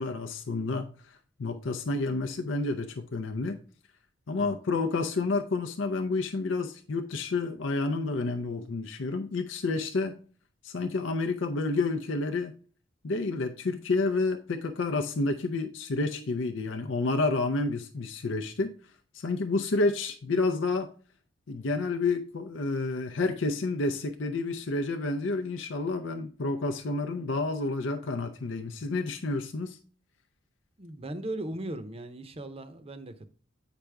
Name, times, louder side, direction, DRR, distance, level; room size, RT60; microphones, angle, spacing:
voice 1, 0.0-3.6 4.3-10.2 10.6-12.5 13.0-18.8 19.1-20.9 21.5-29.8, left 3 dB, 70° left, 0.6 m, -30 dB
voice 2, 30.8-33.3, right 1 dB, 30° right, 0.7 m, -38 dB
8.8 x 5.0 x 3.4 m
head